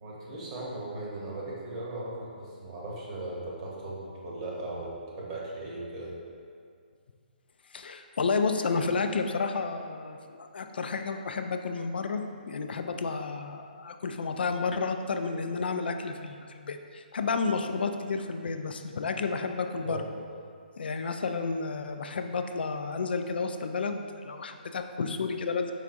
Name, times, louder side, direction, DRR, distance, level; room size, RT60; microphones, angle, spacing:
voice 1, 0.0-6.1 19.8-20.1, right 2 dB, 35° right, -4 dB, 0.9 m, -38 dB
voice 2, 7.7-20.0 20.8-25.7, left 4 dB, 75° left, 6 dB, 0.3 m, -31 dB
4.7 x 3.4 x 2.5 m, 2.2 s
hypercardioid pair, 150°, 5 cm